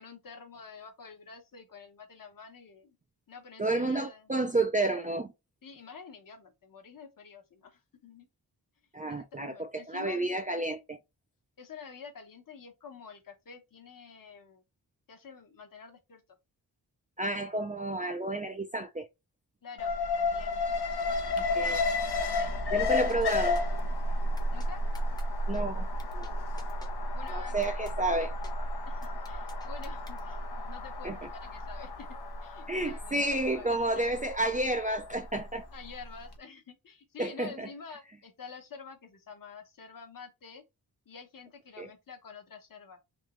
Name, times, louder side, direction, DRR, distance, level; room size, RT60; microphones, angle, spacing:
voice 1, 0.0-3.0 3.3-4.3 5.6-8.3 9.1-10.2 11.6-14.6 15.1-16.2 19.6-20.6 21.0-21.2 21.6-21.9 22.3-22.9 24.5-24.8 27.1-27.8 28.9-32.1 32.4-34.0 35.7-40.6 41.1-43.0, left 6 dB, 55° left, 1.1 m, -48 dB
voice 2, 3.6-5.3 8.9-11.0 17.2-19.1 21.4-21.8 22.7-23.6 25.5-26.3 27.3-28.4 31.0-31.3 32.7-35.7 37.2-37.7 41.8-41.9, right 2 dB, 20° right, 0.3 m, -31 dB
Alarm, 19.8-35.9 36.2-36.3, left 2 dB, 75° left, 0.8 m, -32 dB
sound 1, 23.1-23.8 24.4-24.7 24.9-25.2 25.5-25.6 26.0-26.3 26.6-26.9 27.3-27.4 27.6-27.9 28.2-28.5 29.0-30.2, left 2 dB, 10° left, 0.7 m, -51 dB
3.6 x 3.0 x 3.0 m
wide cardioid pair, 160°, 39 cm